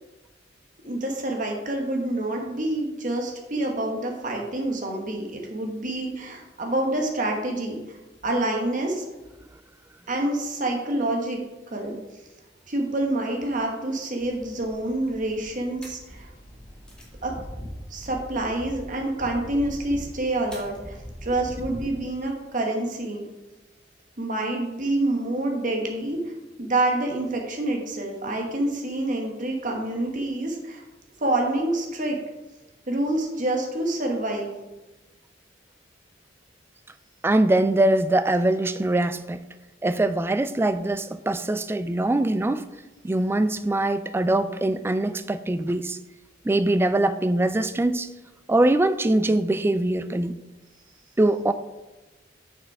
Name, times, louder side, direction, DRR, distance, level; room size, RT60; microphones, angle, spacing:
voice 1, 0.8-8.0 8.2-9.0 10.1-11.4 11.7-12.0 12.7-16.3 17.2-17.3 17.9-21.0 21.2-23.2 24.2-26.2 26.6-30.8 31.2-32.2 32.9-34.5, right 1 dB, 45° right, 1 dB, 1.2 m, -27 dB
sound 1, 14.2-22.1, equal, 5° left, 2.0 m, -41 dB
voice 2, 37.2-39.4 39.8-42.7 43.0-46.0 46.4-48.1 48.5-50.4 51.2-51.5, right 1 dB, 15° right, 12 dB, 0.3 m, -22 dB
6.7 x 6.1 x 4.7 m, 1.1 s
head